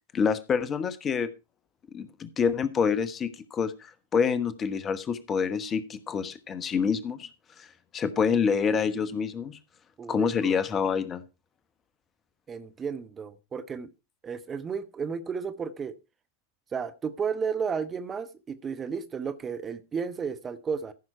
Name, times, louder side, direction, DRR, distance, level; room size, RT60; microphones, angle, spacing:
voice 1, 0.1-1.3 1.9-7.3 7.6-7.7 7.9-9.6 10.1-11.2, left 6 dB, 25° left, 1.1 m, -27 dB
voice 2, 10.0-10.6 12.5-13.9 14.2-16.0 16.7-20.9, right 6 dB, 20° right, 0.9 m, -33 dB
14.5 x 6.2 x 4.4 m
figure-of-eight pair, 90°, 0 cm